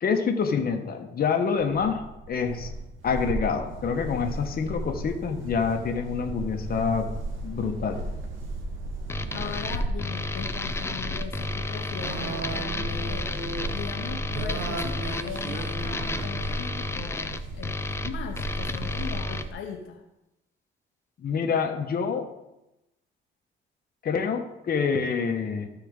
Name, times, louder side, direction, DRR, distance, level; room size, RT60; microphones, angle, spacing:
voice 1, 0.0-2.7 3.0-7.1 7.4-8.0 21.2-22.4 24.0-25.7, left 5 dB, 50° left, 5 dB, 1.1 m, -27 dB
sound 1, 1.5-19.5, right 2 dB, 80° right, 1.1 m, -34 dB
sound 2, 9.1-19.5, left 2 dB, 15° left, 0.5 m, -32 dB
voice 2, 9.3-13.3 13.7-20.0, left 7 dB, 85° left, 4 dB, 0.9 m, -39 dB
13.5 x 4.6 x 3.6 m, 0.93 s
cardioid pair, 90°, 20 cm